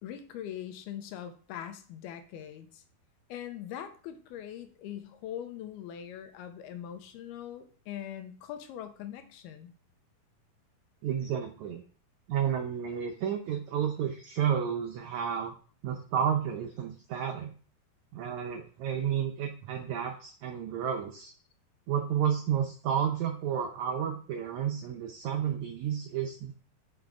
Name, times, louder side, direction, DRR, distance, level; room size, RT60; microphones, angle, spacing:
voice 1, 0.0-2.8 3.3-9.7, left 10 dB, 90° left, 8 dB, 2.8 m, -42 dB
voice 2, 11.0-11.8 12.3-15.5 15.8-17.5 18.1-21.3 21.9-26.5, right 8 dB, 85° right, 4 dB, 1.6 m, -31 dB
6.5 x 5.9 x 4.7 m, 0.42 s
omnidirectional pair, 4.4 m